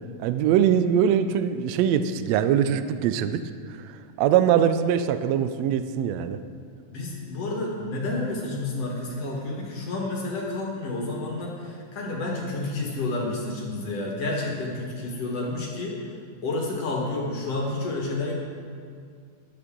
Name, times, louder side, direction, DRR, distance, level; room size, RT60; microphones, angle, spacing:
voice 1, 0.2-3.4 3.8-6.4, right 9 dB, 80° right, 10 dB, 1.6 m, -22 dB
voice 2, 6.9-16.0 16.4-18.3, left 2 dB, 60° left, -2 dB, 2.6 m, -30 dB
14.0 x 11.0 x 3.8 m, 2.2 s
omnidirectional pair, 3.5 m